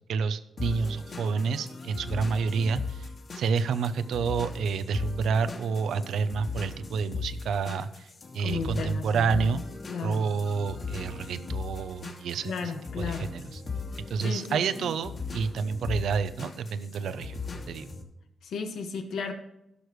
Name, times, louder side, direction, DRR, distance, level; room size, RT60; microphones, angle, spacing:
voice 1, 0.1-3.1 3.3-9.6 10.0-12.7 13.0-13.6 14.1-17.4 17.7-17.9, right 5 dB, 80° right, 12 dB, 0.6 m, -29 dB
sound 1, 0.6-18.0, left 4 dB, 40° left, 2.1 m, -38 dB
voice 2, 8.4-10.3 12.4-13.4 14.2-14.9 18.4-19.3, left 5 dB, 80° left, 4 dB, 1.6 m, -35 dB
16.5 x 6.4 x 3.1 m, 0.85 s
cardioid pair, 130°, 0 cm